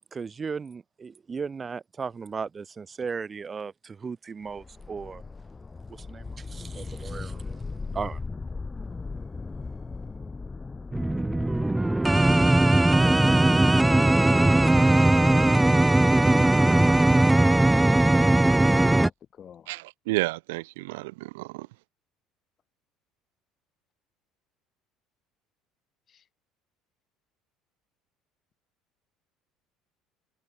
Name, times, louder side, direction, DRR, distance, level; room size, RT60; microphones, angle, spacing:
voice 1, 0.1-5.2 5.9-7.6 7.9-8.2, right 5 dB, 30° right, 1.1 m, -36 dB
sound 1, 4.5-17.5, left 4 dB, 20° left, 7.5 m, -40 dB
sound 2, 10.9-19.1, right 2 dB, 10° right, 0.4 m, -19 dB
voice 2, 11.6-12.8 18.7-19.8 26.1-26.3, left 8 dB, 45° left, 6.0 m, -45 dB
voice 3, 19.7-21.7, right 22 dB, 85° right, 0.9 m, -31 dB
supercardioid pair, 80°, 0 cm